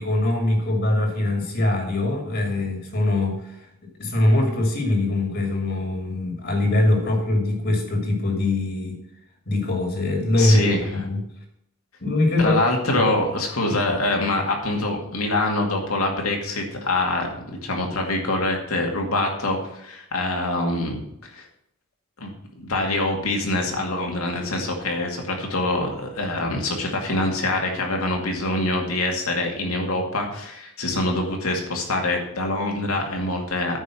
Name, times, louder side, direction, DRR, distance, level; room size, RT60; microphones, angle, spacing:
voice 1, 0.0-3.7 4.0-9.0 9.5-11.2 12.0-12.6 12.9-13.0, left 2 dB, 50° left, 2 dB, 2.3 m, -22 dB
voice 2, 10.4-10.8 12.4-21.0 21.3-21.5 22.2-33.8, left 2 dB, 75° left, 1 dB, 2.3 m, -25 dB
9.3 x 5.3 x 7.6 m, 0.78 s
head